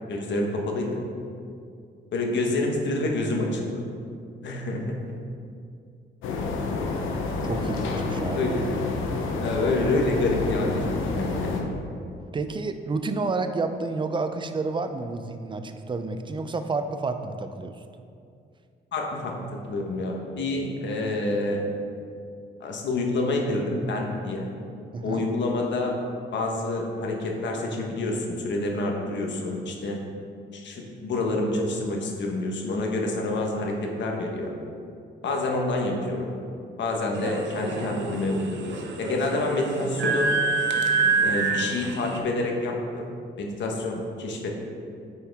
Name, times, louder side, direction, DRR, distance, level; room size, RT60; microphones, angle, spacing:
voice 1, 0.1-1.0 2.1-3.7 4.4-5.1 8.3-8.8 9.4-11.8 18.9-19.4 19.7-21.6 22.6-24.5 25.0-26.0 26.3-30.0 30.5-34.5 35.2-36.3 36.8-40.3 41.2-43.0 43.4-44.5, left 2 dB, 65° left, 1 dB, 1.2 m, -27 dB
sound 1, 6.2-11.6, left 3 dB, 85° left, 0.9 m, -28 dB
voice 2, 7.4-8.4 12.3-17.8 24.9-25.2, right 3 dB, 25° right, 8 dB, 0.5 m, -30 dB
sound 2, 37.1-42.2, right 4 dB, 65° right, 0.8 m, -26 dB
9.3 x 4.6 x 3.5 m, 2.4 s
cardioid pair, 90°, 20 cm